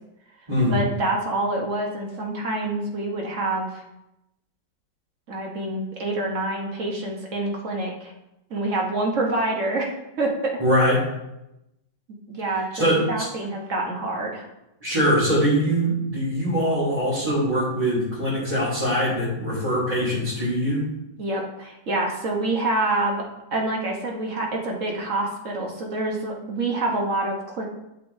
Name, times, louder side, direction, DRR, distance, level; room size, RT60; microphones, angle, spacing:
voice 1, 0.6-3.8 5.3-8.1 8.5-10.6 12.3-14.5 21.2-23.3 23.5-27.7, right 2 dB, 50° right, 0 dB, 1.5 m, -27 dB
voice 2, 10.6-11.0 12.7-13.2 14.8-20.8, equal, 20° right, -10 dB, 3.1 m, -22 dB
11.5 x 6.1 x 2.8 m, 0.90 s
omnidirectional pair, 1.9 m